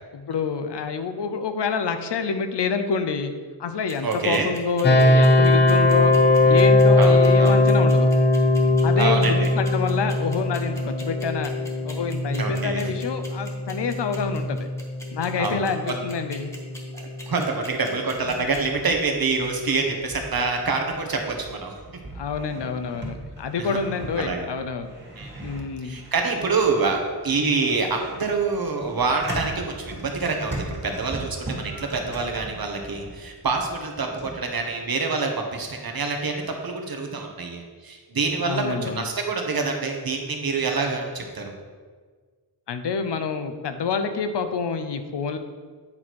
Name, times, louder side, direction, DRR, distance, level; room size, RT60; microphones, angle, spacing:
voice 1, 0.1-3.3 3.6-6.1 6.4-8.1 8.8-11.5 11.8-14.7 15.1-16.5 22.1-24.9 25.4-26.0 38.4-39.1 42.7-45.4, left 5 dB, 80° left, 8 dB, 0.7 m, -27 dB
sound 1, 3.9-18.6, equal, 5° left, 1.6 m, -42 dB
voice 2, 4.0-4.5 7.0-7.6 9.0-9.5 12.4-12.9 15.4-15.6 15.9-16.0 16.9-21.8 23.6-23.8 24.2-24.4 25.2-25.6 25.8-41.5, right 4 dB, 60° right, 3 dB, 1.2 m, -26 dB
sound 2, 4.8-17.7, left 2 dB, 25° left, 0.8 m, -20 dB
sound 3, 18.2-34.4, right 2 dB, 25° right, 2.0 m, -39 dB
8.7 x 4.3 x 4.6 m, 1.5 s
wide cardioid pair, 85°, 41 cm